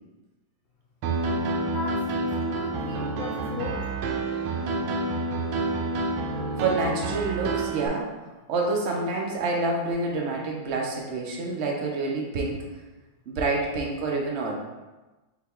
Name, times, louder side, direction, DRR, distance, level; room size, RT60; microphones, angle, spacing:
Piano, 1.0-7.9, right 3 dB, 85° right, 1.4 m, -28 dB
voice 1, 1.6-3.9, left 3 dB, 80° left, -3 dB, 1.3 m, -37 dB
voice 2, 6.6-8.1 8.5-12.7 13.3-14.5, right 3 dB, 65° right, -1 dB, 0.6 m, -27 dB
4.0 x 2.9 x 4.3 m, 1.1 s
omnidirectional pair, 2.1 m